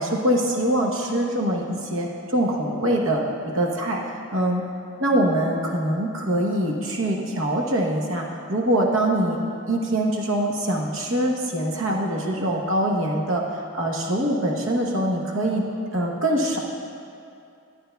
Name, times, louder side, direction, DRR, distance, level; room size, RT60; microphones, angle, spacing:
voice 1, 0.0-3.2 3.5-4.6 5.0-9.4 9.7-13.4 13.7-15.6 15.9-16.6, right 1 dB, 65° right, 0 dB, 1.0 m, -23 dB
11.5 x 9.3 x 2.3 m, 2.6 s
head